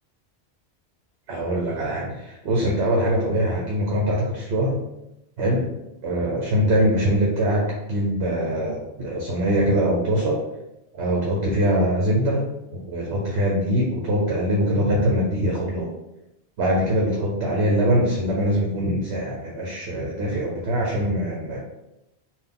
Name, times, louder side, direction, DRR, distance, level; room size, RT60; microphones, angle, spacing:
voice 1, 1.3-4.8 5.4-5.6 6.0-10.4 10.9-12.4 12.9-15.9 16.6-21.6, equal, 75° right, -2 dB, 1.0 m, -23 dB
3.9 x 2.4 x 3.6 m, 0.89 s
omnidirectional pair, 1.1 m